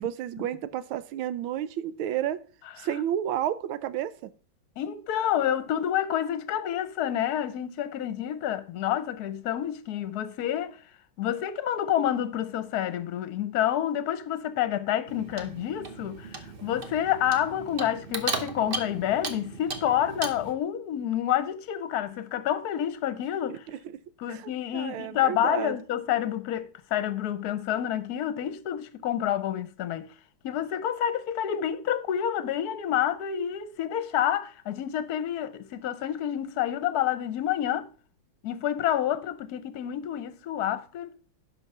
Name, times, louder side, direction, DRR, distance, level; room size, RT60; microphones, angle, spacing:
voice 1, 0.0-2.4 2.8-4.3 23.5-23.8 24.3-25.8, right 11 dB, 85° right, 1.5 m, -31 dB
voice 2, 4.8-10.8 11.2-23.7 24.2-30.1 30.4-37.9 38.4-41.1, left 10 dB, 60° left, 1.2 m, -28 dB
Clock, 15.1-20.5, right 3 dB, 40° right, 0.9 m, -36 dB
11.5 x 4.9 x 5.4 m
omnidirectional pair, 2.2 m